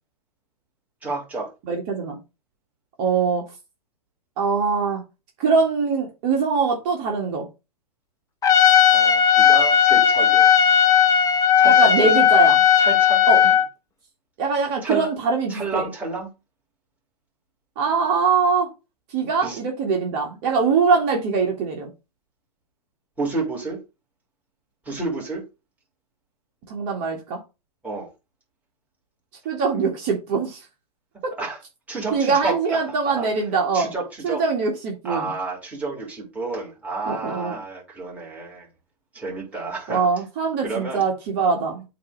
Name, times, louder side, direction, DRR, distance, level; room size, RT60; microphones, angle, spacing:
voice 1, 1.0-1.5 8.9-10.5 11.6-12.1 12.8-13.6 14.8-15.1 15.5-16.3 19.4-19.6 23.2-23.8 24.9-25.4 27.8-28.1 31.4-31.6 31.9-33.3 33.7-34.4 35.0-38.7 39.1-40.1 40.6-41.0, right 3 dB, 5° right, 3.3 m, -30 dB
voice 2, 1.7-2.2 3.0-3.4 4.4-5.0 5.4-7.4 11.6-12.6 13.3-13.5 14.4-15.8 17.8-18.7 19.1-21.9 26.7-27.4 29.5-30.6 31.2-31.3 32.1-33.9 34.2-35.3 37.1-37.6 39.9-41.8, right 5 dB, 40° right, 2.0 m, -22 dB
Trumpet, 8.4-13.7, left 9 dB, 15° left, 1.1 m, -16 dB
8.4 x 3.2 x 5.1 m
hypercardioid pair, 115°, 20 cm